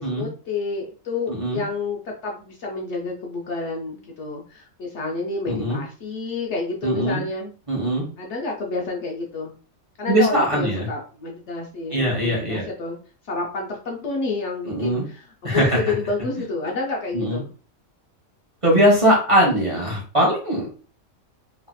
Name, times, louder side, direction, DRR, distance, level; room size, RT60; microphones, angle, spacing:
voice 1, 0.0-7.5 8.2-9.5 10.0-13.0 13.3-17.5, left 3 dB, 65° left, -1 dB, 0.8 m, -29 dB
voice 2, 1.3-1.6 5.5-5.8 6.8-7.2 7.7-8.0 10.1-10.9 11.9-12.6 14.6-15.0 15.4-15.9 17.1-17.4 18.6-20.7, equal, 25° right, -4 dB, 0.9 m, -20 dB
3.1 x 2.7 x 2.2 m, 0.38 s
omnidirectional pair, 1.4 m